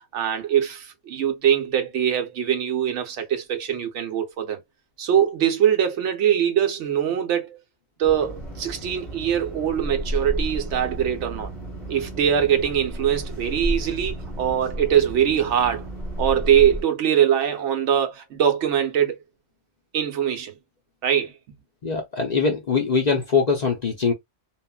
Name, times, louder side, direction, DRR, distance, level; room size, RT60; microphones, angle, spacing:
voice 1, 0.1-4.6 5.0-7.6 8.0-11.5 11.9-15.9 16.2-19.2 19.9-20.6 21.0-21.6, right 9 dB, 65° right, 1.0 m, -22 dB
sound 1, 8.0-16.8, right 1 dB, ahead, 1.4 m, -32 dB
voice 2, 21.8-24.1, left 5 dB, 60° left, 0.4 m, -22 dB
2.9 x 2.5 x 2.2 m
omnidirectional pair, 1.4 m